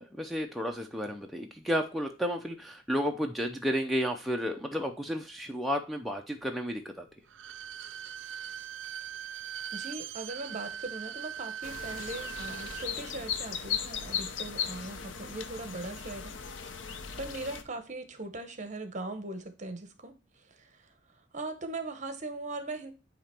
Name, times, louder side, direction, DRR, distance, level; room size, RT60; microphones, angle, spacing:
voice 1, 0.0-7.1, equal, ahead, 0.5 m, -32 dB
Bowed string instrument, 7.2-12.9 13.2-13.3, right 9 dB, 75° right, 0.4 m, -40 dB
voice 2, 9.7-16.4 16.6-20.9 21.3-22.9, right 2 dB, 40° right, 0.9 m, -40 dB
sound 1, 11.6-17.6, left 7 dB, 85° left, 0.7 m, -37 dB
8.6 x 2.9 x 4.3 m
head